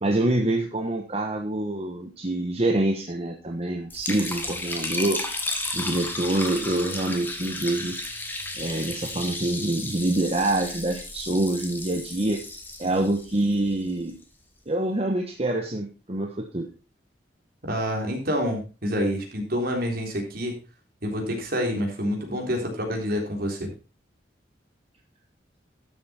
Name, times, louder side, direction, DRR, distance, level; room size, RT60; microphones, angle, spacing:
voice 1, 0.0-5.2 5.7-8.0 8.6-12.4 12.8-14.2 14.7-16.7, right 1 dB, 35° right, 2 dB, 1.2 m, -26 dB
Liquid, 3.9-14.1, left 2 dB, 10° left, 1.8 m, -34 dB
voice 2, 17.6-20.6 21.0-23.7, equal, 60° right, 1 dB, 3.6 m, -27 dB
12.0 x 7.3 x 4.3 m, 0.33 s
head